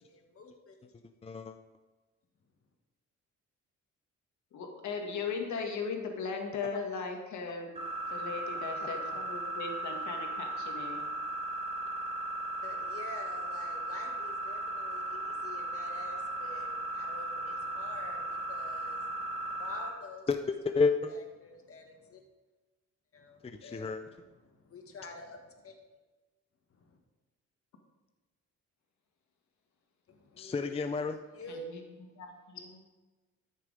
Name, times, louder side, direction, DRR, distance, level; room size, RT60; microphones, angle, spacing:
voice 1, 0.1-1.0 12.6-20.5 21.1-22.2 23.1-23.9 24.4-25.8 26.7-27.0 30.1-30.7 31.3-31.6, left 3 dB, 50° left, 3 dB, 1.9 m, -49 dB
voice 2, 1.2-1.6 20.3-21.2 23.4-24.0 30.4-31.2, left 4 dB, 20° left, 8 dB, 0.5 m, -30 dB
voice 3, 4.5-11.1 15.2-15.5 31.5-31.8 32.2-32.8, left 5 dB, 70° left, 3 dB, 1.9 m, -38 dB
sound 1, 7.7-19.9, right 1 dB, 20° right, 3.8 m, -36 dB
13.0 x 6.6 x 5.0 m, 1.2 s
cardioid pair, 90°, 30 cm